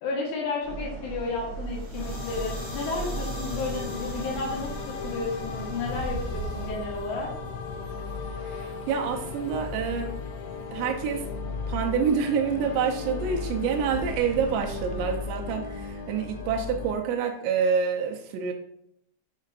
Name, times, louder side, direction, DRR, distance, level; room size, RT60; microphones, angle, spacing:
voice 1, 0.0-7.3, left 3 dB, 70° left, -3 dB, 3.3 m, -32 dB
sound 1, 0.6-6.7, right 3 dB, 60° right, 0.7 m, -38 dB
sound 2, 2.0-16.9, left 4 dB, 85° left, 3.0 m, -35 dB
voice 2, 8.4-10.1 10.7-11.2 11.7-18.5, right 6 dB, 80° right, 1 dB, 2.9 m, -27 dB
7.4 x 5.6 x 2.5 m, 0.72 s
omnidirectional pair, 5.2 m